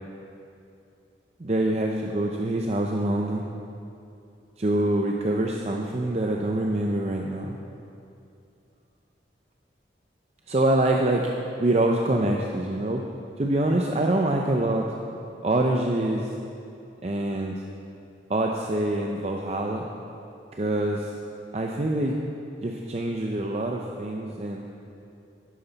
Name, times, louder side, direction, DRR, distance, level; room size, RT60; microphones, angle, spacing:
voice 1, 1.4-3.4 4.6-7.6 10.5-11.3 11.6-13.0 13.4-14.9 15.4-16.3 17.0-17.6 18.3-19.9 20.5-21.1 21.5-22.2 22.6-24.7, right 1 dB, 35° right, 1 dB, 0.5 m, -25 dB
11.0 x 9.8 x 4.0 m, 2.6 s
head